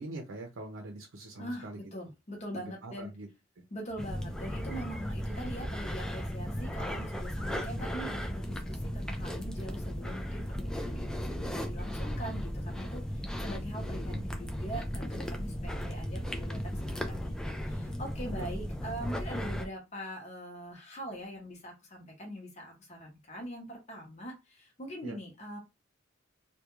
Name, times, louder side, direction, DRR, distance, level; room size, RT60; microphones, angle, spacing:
voice 1, 0.0-1.8 2.8-3.3 18.4-18.5 25.0-25.2, right 2 dB, 75° right, 1 dB, 0.6 m, -42 dB
voice 2, 1.4-3.1 3.7-25.6, equal, 35° left, 0 dB, 0.8 m, -42 dB
sound 1, 4.0-19.7, equal, 5° left, 0.3 m, -36 dB
2.3 x 2.2 x 3.0 m, 0.24 s
head